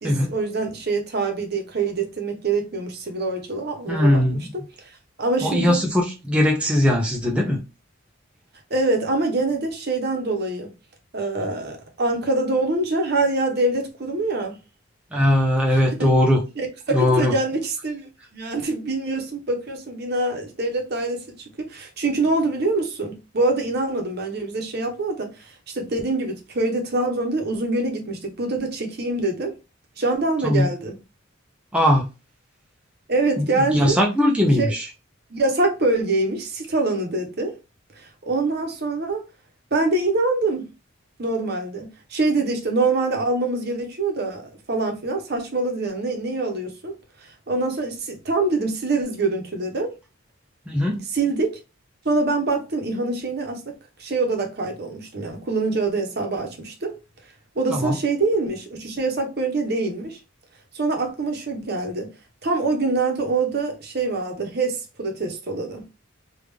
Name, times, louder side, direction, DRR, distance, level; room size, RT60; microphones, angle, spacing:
voice 1, 0.0-4.5 4.8-4.9 5.2-5.8 8.7-10.7 11.1-14.5 15.7-16.1 16.6-29.5 30.0-31.0 33.1-34.0 34.6-34.7 35.3-37.5 38.0-39.2 39.7-40.6 41.2-49.9 51.1-51.6 52.0-53.7 54.0-57.0 57.6-60.2 60.7-62.1 62.4-65.8, right 3 dB, 50° right, 0.8 m, -25 dB
voice 2, 3.9-4.4 5.4-7.6 15.1-16.4 16.9-17.3 30.4-30.7 31.7-32.0 33.4-33.5 33.7-34.9 50.7-51.0 57.7-58.0, left 1 dB, 5° right, 0.5 m, -19 dB
3.4 x 2.4 x 3.2 m
head